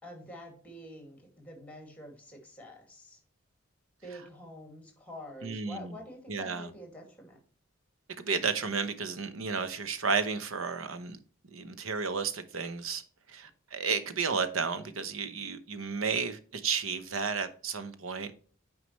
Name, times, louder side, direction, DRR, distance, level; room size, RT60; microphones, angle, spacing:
voice 1, 0.0-3.2 4.0-7.4, left 1 dB, 5° left, 2.2 m, -47 dB
voice 2, 5.4-6.0 6.3-6.7 8.2-11.2 11.5-13.0 13.3-18.4, right 5 dB, 75° right, 0.9 m, -32 dB
9.4 x 4.8 x 3.1 m
head